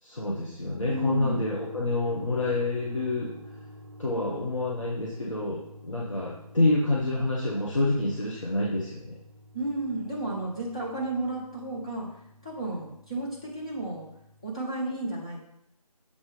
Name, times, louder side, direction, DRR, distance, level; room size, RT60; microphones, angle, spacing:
voice 1, 0.0-3.3 4.0-9.2, left 2 dB, 55° left, -5 dB, 1.2 m, -28 dB
sound 1, 0.8-14.5, equal, 45° right, 1.3 m, -48 dB
voice 2, 0.9-1.4 9.5-12.1 12.4-14.1 14.4-15.4, right 2 dB, 10° left, -6 dB, 0.6 m, -32 dB
7.1 x 3.3 x 5.2 m, 0.76 s
figure-of-eight pair, 160°, 20 cm